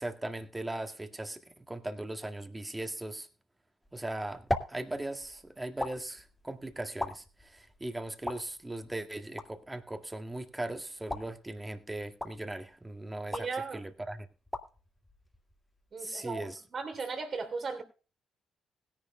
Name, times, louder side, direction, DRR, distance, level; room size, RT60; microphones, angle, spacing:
voice 1, 0.0-3.3 3.9-14.3 16.0-16.6, right 1 dB, 15° right, 1.9 m, -39 dB
sound 1, 3.8-16.0, left 1 dB, 10° left, 2.1 m, -42 dB
voice 2, 13.3-13.8 15.9-17.8, right 4 dB, 50° right, 3.2 m, -37 dB
20.0 x 10.5 x 2.2 m
figure-of-eight pair, 40°, 0 cm